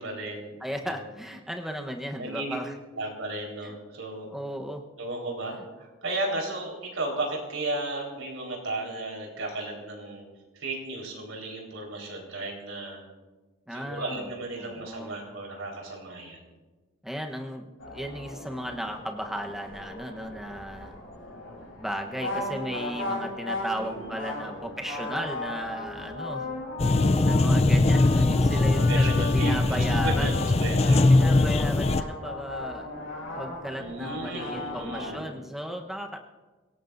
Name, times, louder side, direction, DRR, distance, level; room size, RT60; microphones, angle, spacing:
voice 1, 0.0-0.5 0.8-1.1 2.1-2.5 2.9-4.3 5.0-10.2 10.5-13.0 13.7-16.5 23.7-24.7 28.9-31.2 33.8-35.3, right 2 dB, 80° right, 0 dB, 4.4 m, -35 dB
voice 2, 0.6-2.7 3.6-3.7 4.3-4.8 5.5-5.6 13.7-14.3 14.6-15.2 17.0-17.7 17.9-21.0 21.8-26.5 27.2-30.4 31.1-32.9 33.3-36.2, equal, ahead, 2 dB, 1.0 m, -35 dB
sound 1, 17.8-35.2, left 2 dB, 75° left, 6.3 m, -37 dB
sound 2, 26.8-32.0, left 2 dB, 30° left, 0.4 m, -21 dB
25.0 x 17.0 x 2.7 m, 1.3 s
head